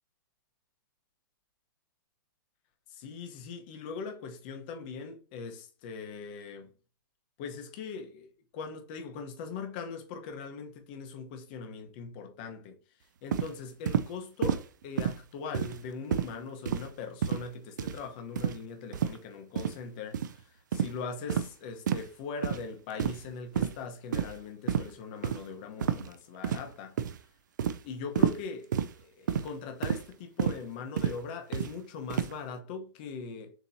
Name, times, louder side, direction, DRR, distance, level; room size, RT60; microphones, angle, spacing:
voice 1, 2.9-6.7 7.4-8.3 8.5-12.8 13.2-27.0 27.8-28.7 29.0-33.5, left 5 dB, 30° left, 0.8 m, -41 dB
sound 1, 13.3-13.5 13.9-14.1 14.4-14.7 15.0-15.2 15.5-15.8 16.1-16.3 16.7-16.9 17.2-17.5 17.8-18.0 18.4-18.6 18.9-19.2 19.6-19.8 20.1-20.3 20.7-20.9 21.3-21.5 21.9-22.1 22.4-22.6 23.0-23.3 23.5-23.7 24.1-24.4 24.7-24.9 25.2-25.4 25.8-26.1 26.4-26.7 27.0-27.2 27.6-27.8 28.2-28.4 28.7-28.9 29.3-29.5 29.8-30.0 30.4-30.6 31.0-31.2 31.5-31.7 32.1-32.3, right 8 dB, 60° right, 0.5 m, -29 dB
6.9 x 2.9 x 2.6 m
hypercardioid pair, 170°, 11 cm